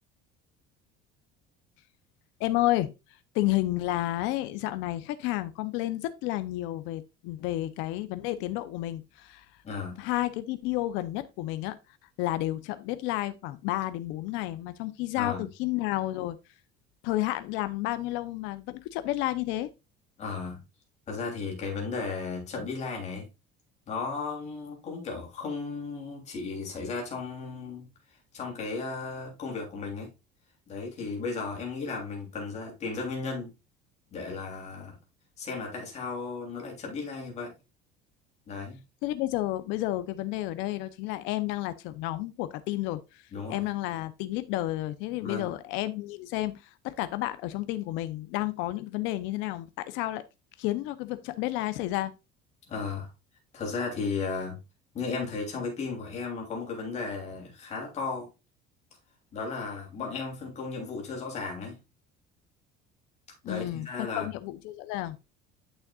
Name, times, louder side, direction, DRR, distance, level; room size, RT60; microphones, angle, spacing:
voice 1, 2.4-2.9 3.3-9.5 10.0-11.8 12.2-16.4 17.0-19.7 39.0-43.2 43.5-50.2 50.6-52.1 63.5-65.2, left 16 dB, 70° left, 0.7 m, -31 dB
voice 2, 9.6-10.0 15.2-15.5 20.2-20.6 21.1-23.3 23.9-27.9 28.3-30.1 30.7-33.5 34.1-35.0 35.4-37.5 38.5-38.8 43.3-43.6 45.2-45.5 52.7-53.1 53.5-54.6 54.9-58.3 59.3-61.8 63.4-64.3, left 4 dB, 35° left, 3.2 m, -35 dB
9.0 x 6.3 x 2.4 m
cardioid pair, 155°, 20 cm